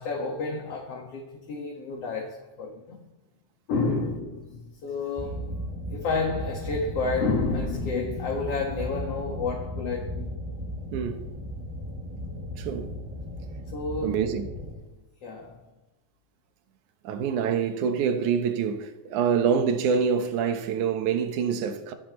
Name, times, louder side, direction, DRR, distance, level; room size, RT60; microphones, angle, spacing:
voice 1, 0.0-3.1 3.7-5.6 5.9-10.3 13.7-14.3 15.2-15.6, left 4 dB, 50° left, 2.5 m, -30 dB
sound 1, 5.2-14.7, equal, 10° right, 2.1 m, -35 dB
voice 2, 10.9-11.3 12.6-12.9 14.0-14.5 17.0-21.9, right 7 dB, 70° right, 2.5 m, -26 dB
26.0 x 10.0 x 3.2 m
omnidirectional pair, 3.9 m